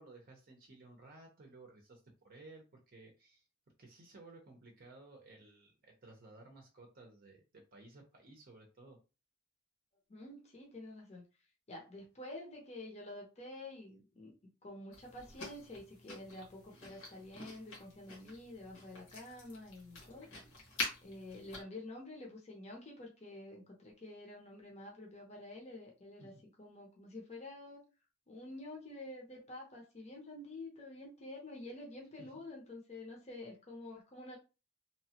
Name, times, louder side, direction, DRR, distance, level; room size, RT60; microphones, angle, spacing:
voice 1, 0.0-3.4 3.8-9.0 26.2-26.3 32.2-32.3, right 2 dB, 45° right, 1 dB, 0.6 m, -56 dB
voice 2, 10.1-11.2 11.7-14.3 14.6-20.3 21.0-26.3 26.6-27.8 28.3-34.4, left 2 dB, 30° left, -1 dB, 0.7 m, -49 dB
sound 1, 14.9-21.6, left 2 dB, 80° left, 1.4 m, -46 dB
2.9 x 2.2 x 2.8 m, 0.30 s
head